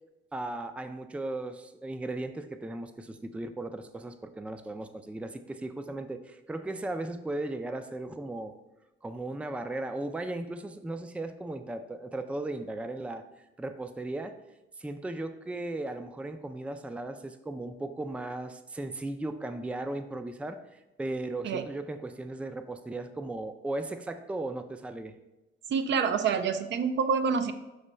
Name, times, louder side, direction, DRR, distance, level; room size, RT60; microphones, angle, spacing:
voice 1, 0.3-8.5 9.0-13.2 13.6-14.3 14.8-25.1, right 2 dB, 5° right, 9 dB, 0.4 m, -36 dB
voice 2, 25.7-27.5, right 6 dB, 65° right, 9 dB, 0.6 m, -27 dB
6.4 x 3.0 x 5.5 m, 0.99 s
cardioid pair, 90°, 20 cm